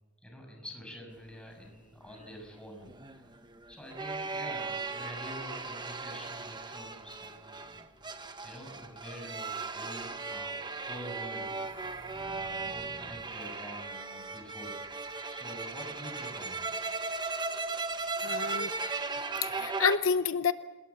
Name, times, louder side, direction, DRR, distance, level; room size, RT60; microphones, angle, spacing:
voice 1, 0.2-3.4 3.7-7.8 8.4-11.9 12.2-14.8 15.3-16.7, equal, 5° left, 2 dB, 6.6 m, -47 dB
sound 1, 2.2-20.0, right 3 dB, 20° right, 1.3 m, -37 dB
sound 2, 9.8-13.5, left 1 dB, 25° left, 6.7 m, -56 dB
voice 2, 18.2-18.7 19.4-20.5, left 6 dB, 70° left, 12 dB, 0.8 m, -28 dB
28.0 x 20.0 x 8.4 m, 1.1 s
head